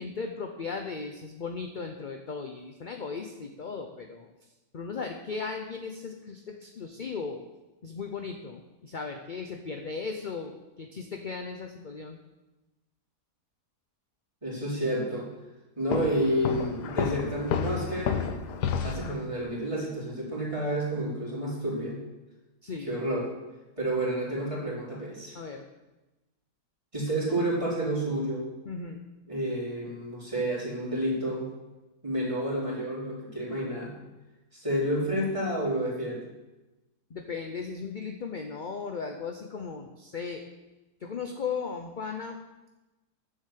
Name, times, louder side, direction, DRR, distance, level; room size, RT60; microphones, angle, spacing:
voice 1, 0.0-4.3 4.7-7.4 7.8-12.2 22.6-23.0 25.3-25.6 28.6-29.0 37.1-40.4 41.0-42.4, left 5 dB, 40° left, 4 dB, 0.7 m, -37 dB
voice 2, 14.4-15.3 15.7-18.2 18.8-22.0 22.9-23.3 23.8-25.4 26.9-28.5 29.3-31.5 32.0-33.9 34.5-36.2, right 1 dB, 20° right, -5 dB, 3.6 m, -30 dB
Walk footsteps, 15.9-19.2, left 7 dB, 85° left, 1.4 m, -31 dB
10.0 x 7.2 x 7.5 m, 1.1 s
omnidirectional pair, 1.7 m